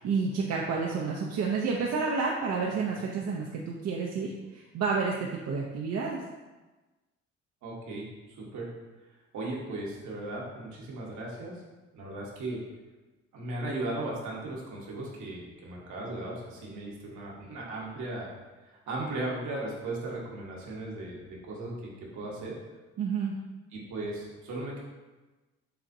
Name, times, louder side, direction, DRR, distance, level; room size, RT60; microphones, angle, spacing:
voice 1, 0.0-6.2 23.0-23.3, right 5 dB, 55° right, -2 dB, 0.6 m, -30 dB
voice 2, 7.6-8.7 9.3-11.5 11.9-12.6 13.3-18.3 18.6-22.5 23.7-24.8, right 2 dB, 70° right, -3 dB, 1.2 m, -37 dB
6.9 x 2.5 x 2.6 m, 1.2 s
supercardioid pair, 60°, 30 cm